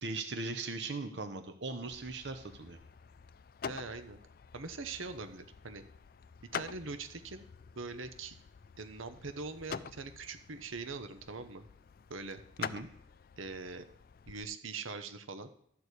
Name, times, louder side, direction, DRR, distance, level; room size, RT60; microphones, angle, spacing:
voice 1, 0.0-2.8 12.6-12.9, right 3 dB, 60° right, 7 dB, 0.9 m, -39 dB
sound 1, 1.9-14.4, left 7 dB, 45° left, 0.3 m, -47 dB
voice 2, 3.7-4.2 4.5-5.8 6.5-7.4 7.8-8.4 8.8-11.6 12.1-12.4 13.4-13.8 14.3-15.5, right 4 dB, 90° right, 9 dB, 1.0 m, -42 dB
12.5 x 4.7 x 8.2 m, 0.67 s
head